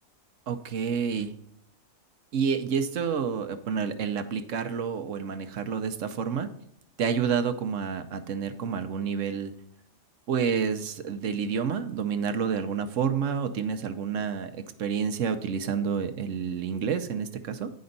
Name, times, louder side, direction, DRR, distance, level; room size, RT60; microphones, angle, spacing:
voice 1, 0.5-1.3 2.3-6.5 7.0-9.5 10.3-17.7, right 6 dB, 70° right, 9 dB, 1.1 m, -29 dB
9.7 x 5.2 x 3.9 m, 0.72 s
omnidirectional pair, 1.4 m